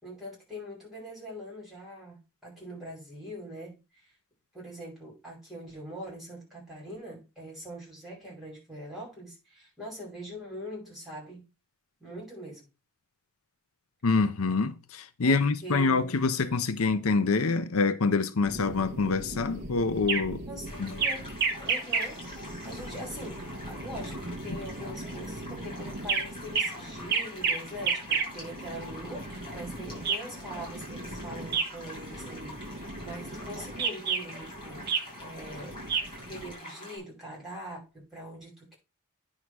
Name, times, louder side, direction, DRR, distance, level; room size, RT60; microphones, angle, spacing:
voice 1, 0.0-4.1 4.5-11.5 12.0-12.7 15.2-16.1 20.5-21.4 21.6-22.2 22.6-35.8 36.1-38.8, right 1 dB, ahead, 5.3 m, -43 dB
voice 2, 14.0-20.4 20.8-20.9, left 4 dB, 90° left, 0.7 m, -26 dB
sound 1, 18.4-36.5, right 4 dB, 50° right, 1.4 m, -34 dB
sound 2, 20.6-37.0, left 1 dB, 25° left, 6.1 m, -46 dB
9.6 x 3.8 x 6.2 m
head